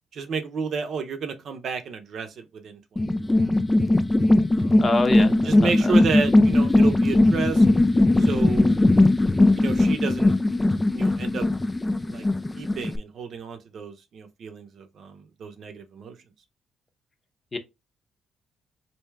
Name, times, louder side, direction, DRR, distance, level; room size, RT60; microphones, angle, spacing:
voice 1, 0.1-3.5 4.5-7.7 8.2-8.8 9.5-10.3 10.9-11.5 12.1-12.3 12.6-16.2, right 5 dB, 60° right, 0.6 m, -32 dB
sound 1, 3.0-13.0, left 2 dB, 15° left, 0.3 m, -19 dB
voice 2, 4.8-5.9 17.5-17.6, left 2 dB, 30° left, 0.7 m, -26 dB
3.2 x 2.7 x 3.3 m
cardioid pair, 90°, 0 cm